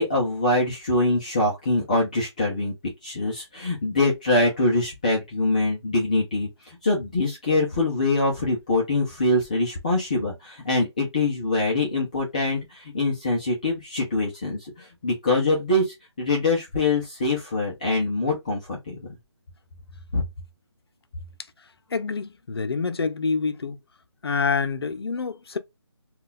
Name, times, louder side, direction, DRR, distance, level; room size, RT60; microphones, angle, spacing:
voice 1, 0.0-2.7 3.0-19.2 20.1-20.3, left 2 dB, 15° left, 0.5 m, -24 dB
voice 2, 21.9-23.8 24.2-25.6, left 5 dB, 60° left, 0.6 m, -26 dB
3.7 x 2.3 x 2.4 m
figure-of-eight pair, 170°, 15 cm